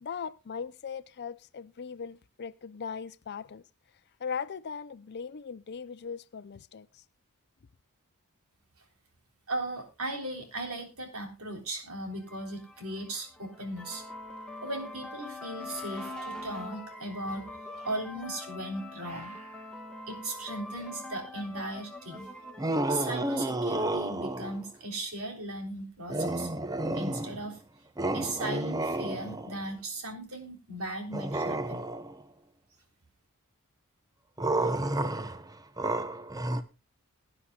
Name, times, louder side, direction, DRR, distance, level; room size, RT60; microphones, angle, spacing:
voice 1, 0.0-3.6 4.2-6.9, left 6 dB, 50° left, 0.5 m, -39 dB
voice 2, 9.5-14.0 14.6-17.6 17.9-19.4 20.1-22.3 22.9-26.5 26.9-27.6 28.1-31.8, right 1 dB, 70° right, 3.5 m, -37 dB
sound 1, 12.2-24.0, left 1 dB, 5° left, 1.4 m, -44 dB
sound 2, 14.3-14.4 15.9-16.5 17.6-17.9 19.0-19.7 20.7-20.9 22.1-22.8 25.9-26.0, equal, 35° right, 2.9 m, -52 dB
sound 3, 22.6-24.7 26.1-27.5 28.0-29.6 31.1-32.2 34.4-36.6, right 2 dB, 15° right, 0.7 m, -31 dB
21.5 x 9.8 x 2.3 m
head